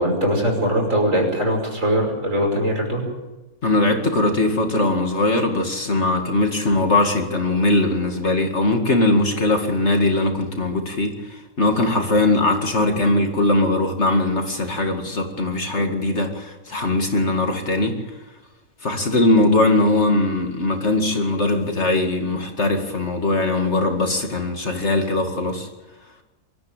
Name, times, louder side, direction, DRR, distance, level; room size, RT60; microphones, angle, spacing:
voice 1, 0.0-3.0, equal, 55° right, 1 dB, 6.0 m, -21 dB
voice 2, 3.6-18.0 18.8-25.7, left 2 dB, 50° left, 4 dB, 2.4 m, -20 dB
23.0 x 14.5 x 8.9 m, 1.1 s
omnidirectional pair, 1.6 m